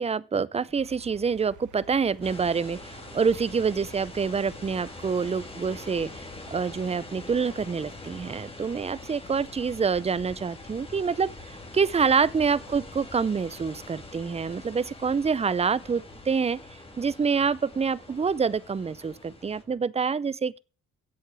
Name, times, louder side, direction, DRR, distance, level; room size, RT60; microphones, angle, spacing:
voice 1, 0.0-16.6 17.0-20.6, right 5 dB, 20° right, 0.5 m, -27 dB
sound 1, 0.5-19.8, equal, ahead, 3.2 m, -59 dB
sound 2, 0.8-8.5, right 7 dB, 75° right, 1.4 m, -53 dB
sound 3, 2.2-19.6, left 2 dB, 20° left, 2.7 m, -44 dB
8.0 x 7.5 x 7.4 m
cardioid pair, 90°, 30 cm